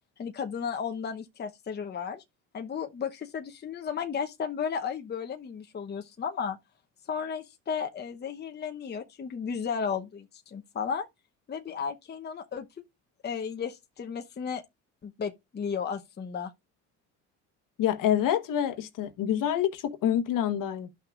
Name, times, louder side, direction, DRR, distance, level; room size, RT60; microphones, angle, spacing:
voice 1, 0.2-2.2 2.5-6.6 7.1-11.1 11.5-12.7 13.2-14.6 15.0-16.5, left 6 dB, 30° left, 0.9 m, -34 dB
voice 2, 17.8-20.9, left 10 dB, 60° left, 1.3 m, -27 dB
12.0 x 5.9 x 2.5 m
supercardioid pair, 80°, 37 cm